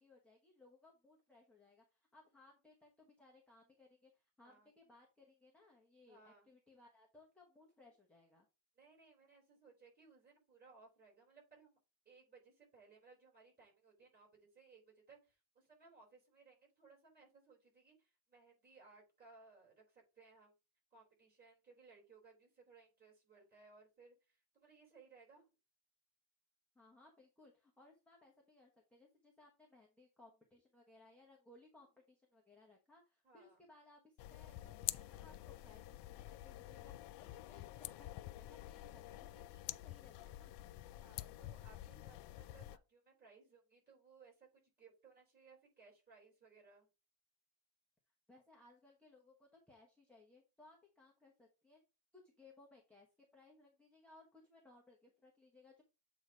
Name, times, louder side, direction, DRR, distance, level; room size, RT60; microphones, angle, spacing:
voice 1, 0.0-8.5 26.7-40.5 48.3-51.8 52.1-55.8, left 2 dB, 5° left, -2 dB, 1.1 m, -65 dB
voice 2, 4.4-4.7 6.1-6.5 8.7-11.8 12.0-20.5 20.9-25.5 33.2-33.6 41.0-46.9, right 4 dB, 25° right, -2 dB, 3.5 m, -64 dB
sound 1, 34.2-42.8, left 15 dB, 80° left, 0.5 m, -48 dB
7.9 x 3.0 x 4.9 m, 0.28 s
cardioid pair, 180°, 41 cm